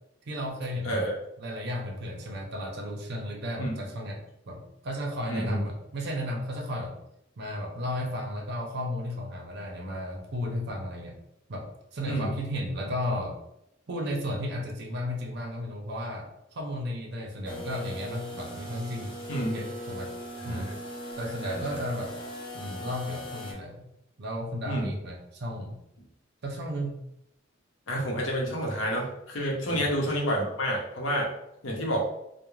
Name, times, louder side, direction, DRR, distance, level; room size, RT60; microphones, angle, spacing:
voice 1, 0.3-1.0 1.4-4.2 4.5-7.0 7.4-11.2 11.5-13.4 13.9-20.1 20.4-20.7 21.2-22.1 22.5-23.9 24.2-25.8 26.4-27.1 29.7-29.9, left 1 dB, 55° right, 1 dB, 0.6 m, -34 dB
voice 2, 0.8-1.1 3.6-3.8 5.3-5.6 12.0-12.3 19.3-19.7 20.4-20.8 21.4-21.8 24.6-24.9 27.9-31.3 31.6-32.1, equal, 75° left, -2 dB, 0.8 m, -29 dB
sound 1, 17.4-23.5, equal, 25° left, 0.5 m, -39 dB
2.4 x 2.1 x 3.0 m, 0.81 s
head